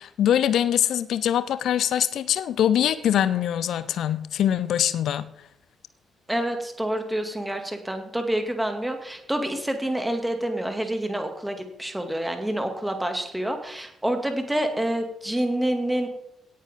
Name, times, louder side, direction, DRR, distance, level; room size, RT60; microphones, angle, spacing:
voice 1, 0.0-5.3, left 10 dB, 55° left, 16 dB, 0.7 m, -23 dB
voice 2, 6.3-16.1, right 1 dB, 10° right, 6 dB, 2.3 m, -27 dB
17.5 x 9.3 x 3.7 m, 0.78 s
figure-of-eight pair, 40°, 0 cm